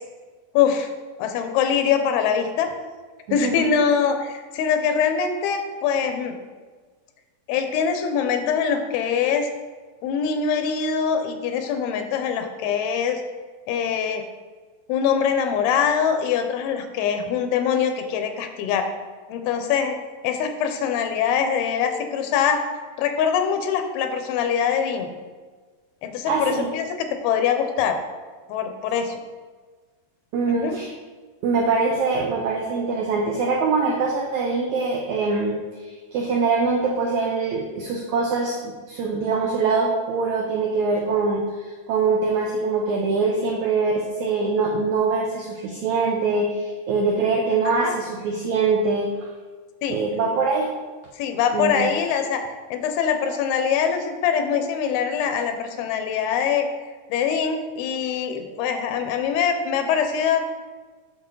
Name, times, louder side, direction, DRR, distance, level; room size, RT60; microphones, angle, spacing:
voice 1, 0.5-0.9 1.2-2.7 3.3-6.4 7.5-9.5 10.0-13.2 13.7-14.2 14.9-18.9 19.3-20.0 20.2-22.6 23.0-25.1 26.0-28.0 28.5-29.2 30.5-30.8 47.8-47.9 49.8-50.0 51.1-56.7 57.1-60.5, left 7 dB, 85° left, 6 dB, 2.7 m, -23 dB
voice 2, 3.3-3.7 26.3-26.7 30.3-30.9 31.4-49.1 49.9-50.7 51.5-51.9, right 4 dB, 90° right, -1 dB, 1.6 m, -23 dB
8.0 x 6.3 x 3.8 m, 1.4 s
omnidirectional pair, 4.4 m